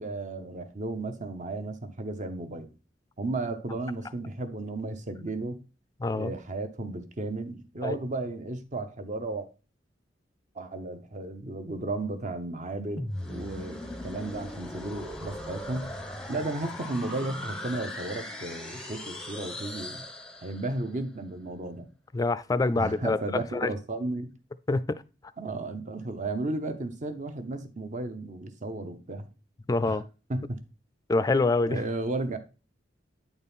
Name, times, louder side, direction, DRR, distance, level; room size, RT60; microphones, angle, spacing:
voice 1, 0.0-2.7 3.2-5.6 6.1-9.5 10.5-15.9 16.3-20.0 20.4-21.9 22.8-24.3 25.4-29.3 29.8-30.0 30.3-30.6 31.7-32.4, right 2 dB, 40° right, 0.8 m, -34 dB
voice 2, 6.0-6.3 7.8-8.0 22.1-23.7 24.7-25.0 29.7-30.0 31.1-31.8, left 3 dB, 20° left, 0.3 m, -26 dB
sound 1, 13.0-20.8, left 1 dB, 5° left, 0.7 m, -39 dB
9.1 x 4.2 x 3.5 m
head